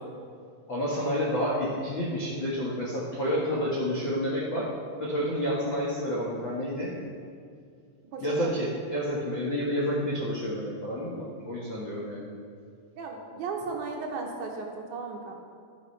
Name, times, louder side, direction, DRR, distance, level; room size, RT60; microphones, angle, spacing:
voice 1, 0.7-4.7 5.0-7.0 8.2-12.3, equal, 80° left, -7 dB, 1.0 m, -29 dB
voice 2, 8.0-8.5 13.0-15.4, right 4 dB, 85° right, 1 dB, 1.7 m, -35 dB
13.0 x 11.5 x 3.3 m, 2.2 s
omnidirectional pair, 4.9 m